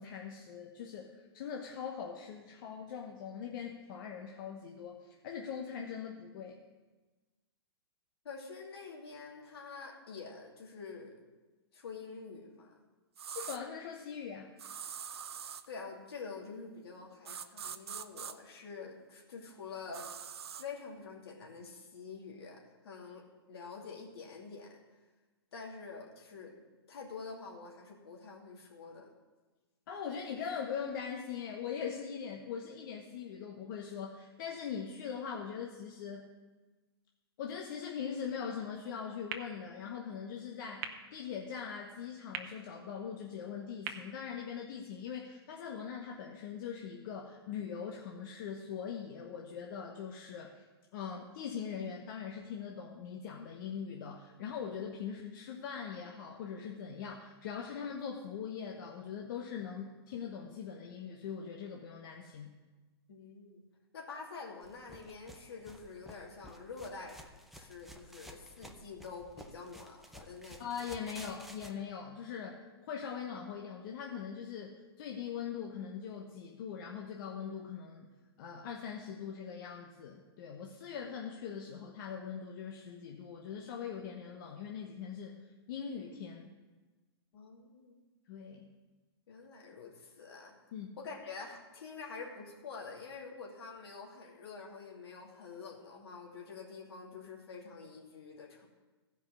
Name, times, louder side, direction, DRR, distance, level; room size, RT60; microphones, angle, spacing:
voice 1, 0.0-6.6 13.3-14.5 29.9-36.3 37.4-50.6 50.9-62.5 70.6-78.1 78.4-85.4 85.7-86.5 88.3-88.7 90.7-90.9, left 7 dB, 50° left, 0 dB, 1.1 m, -41 dB
voice 2, 8.2-11.1 11.7-12.7 15.7-20.1 20.5-24.8 25.5-26.6 26.9-29.1 63.1-63.6 63.9-70.6 87.3-88.0 89.3-90.5 91.0-98.7, left 4 dB, 70° left, -1 dB, 2.6 m, -47 dB
sound 1, 13.2-13.6 14.6-15.7 17.2-18.3 19.9-20.6, right 8 dB, 75° right, 0.6 m, -43 dB
sound 2, 39.3-45.2, right 7 dB, 45° right, 1.0 m, -48 dB
sound 3, 64.6-71.7, equal, ahead, 0.7 m, -54 dB
15.0 x 5.4 x 6.4 m, 1.2 s
hypercardioid pair, 125°, 14 cm